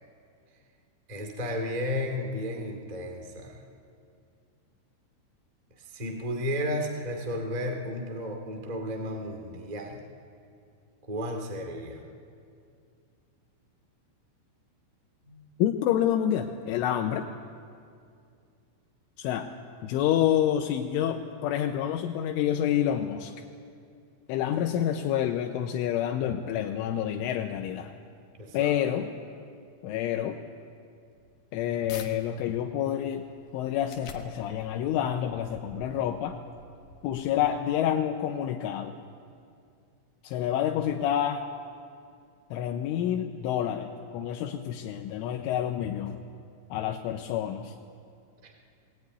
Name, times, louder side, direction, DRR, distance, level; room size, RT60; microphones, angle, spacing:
voice 1, 1.1-3.6 5.7-10.0 11.0-12.0 15.3-15.5 28.4-28.7 48.4-48.5, left 1 dB, 20° right, 2 dB, 1.2 m, -33 dB
voice 2, 15.6-17.3 19.2-19.5 19.8-23.3 24.3-27.9 28.5-29.1 29.8-30.4 31.5-33.3 33.5-36.4 37.0-39.0 40.2-41.4 42.5-46.2 46.7-47.7, left 10 dB, 80° left, 4 dB, 3.3 m, -28 dB
sound 1, 31.1-32.1 32.6-37.9, left 6 dB, 65° left, 2.5 m, -50 dB
21.5 x 20.0 x 9.5 m, 2.4 s
omnidirectional pair, 5.7 m